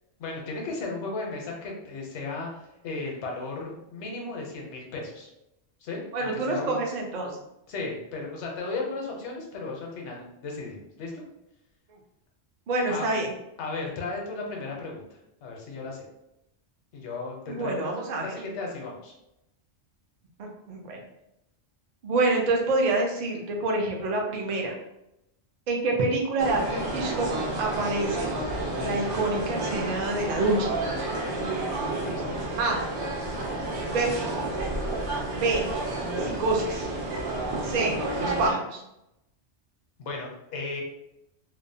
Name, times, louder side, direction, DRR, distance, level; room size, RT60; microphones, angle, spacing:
voice 1, 0.2-2.6 2.8-5.3 5.8-6.8 7.7-11.2 12.9-13.0 13.6-15.0 15.4-16.1 16.9-19.1 32.0-32.4 40.0-40.8, left 3 dB, 80° left, 0 dB, 0.9 m, -35 dB
voice 2, 6.1-7.3 12.7-13.3 17.5-18.3 20.4-21.0 22.0-24.7 25.7-27.3 27.6-28.3 28.8-30.7 32.6-32.8 33.9-34.4 35.3-35.7 36.2-36.9 37.6-38.8, right 2 dB, 55° right, 1 dB, 0.5 m, -27 dB
sound 1, 26.4-38.5, right 2 dB, 85° right, 1.0 m, -30 dB
2.6 x 2.0 x 2.6 m, 0.86 s
omnidirectional pair, 1.1 m